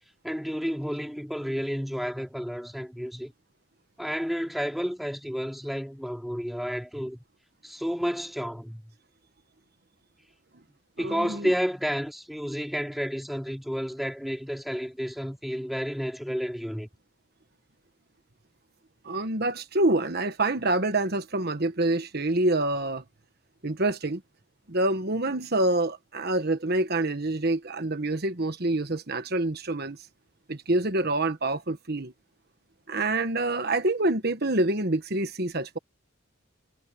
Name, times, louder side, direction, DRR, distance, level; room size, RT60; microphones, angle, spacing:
voice 1, 0.2-3.3 4.0-7.2 7.6-8.8 11.0-16.9, equal, ahead, 3.0 m, -31 dB
voice 2, 11.0-11.5 19.0-23.0 23.6-24.2 24.7-30.0 30.5-32.1 32.9-35.8, right 2 dB, 50° right, 1.4 m, -26 dB
head